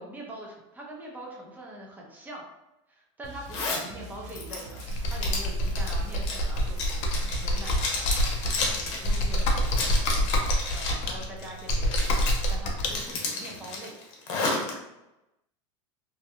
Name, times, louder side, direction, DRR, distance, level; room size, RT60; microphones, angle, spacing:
voice 1, 0.0-2.4 2.9-4.8 5.1-8.1 8.7-13.9, right 1 dB, 10° right, -3 dB, 0.7 m, -44 dB
sound 1, 3.2-10.3, right 2 dB, 65° right, 0.5 m, -44 dB
Zipper (clothing), 3.5-3.9 4.3-11.0 11.4-12.5 12.9-14.7, left 3 dB, 70° left, 0.8 m, -32 dB
Computer keyboard, 4.9-13.0, equal, 45° left, 0.5 m, -27 dB
2.6 x 2.2 x 2.7 m, 0.93 s
supercardioid pair, 125°, 16 cm